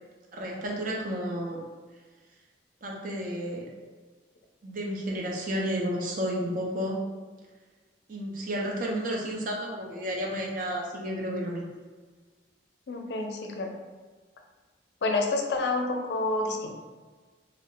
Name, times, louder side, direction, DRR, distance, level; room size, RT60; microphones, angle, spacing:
voice 1, 0.3-1.6 2.8-3.6 4.6-7.0 8.1-11.6, equal, 50° right, -1 dB, 0.5 m, -31 dB
voice 2, 12.9-13.7 15.0-16.7, left 2 dB, 70° left, 2 dB, 0.4 m, -28 dB
2.3 x 2.1 x 3.6 m, 1.4 s
head